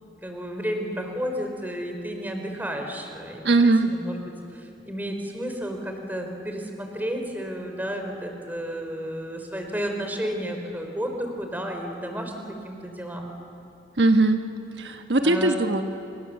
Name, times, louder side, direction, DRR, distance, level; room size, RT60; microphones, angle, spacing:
voice 1, 0.2-4.2 4.5-13.3 15.2-15.8, equal, 10° right, 3 dB, 3.6 m, -32 dB
voice 2, 3.4-3.9 14.0-14.4 14.8-15.8, right 2 dB, 80° right, 6 dB, 1.2 m, -20 dB
29.0 x 27.5 x 7.4 m, 2.7 s
head